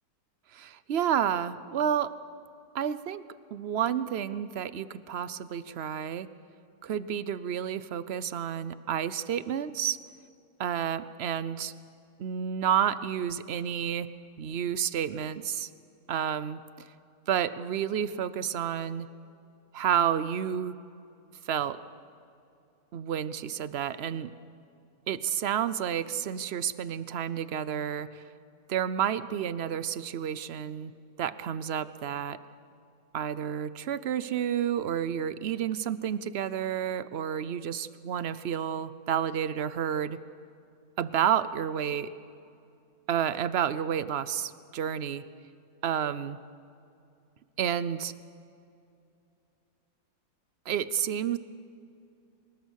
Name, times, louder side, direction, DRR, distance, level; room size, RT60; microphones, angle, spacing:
voice 1, 0.5-2.1 2.7-3.2 3.5-6.3 6.8-10.0 10.6-11.7 12.2-14.1 14.4-15.7 16.1-16.6 17.3-19.1 19.7-20.8 21.5-21.8 22.9-24.3 25.1-28.2 28.7-30.9 31.2-32.4 33.1-40.2 41.0-42.1 43.1-45.2 45.8-46.4 47.6-48.1 50.7-51.4, right 9 dB, 55° right, 15 dB, 0.7 m, -30 dB
24.5 x 21.5 x 6.4 m, 2.5 s
omnidirectional pair, 1.7 m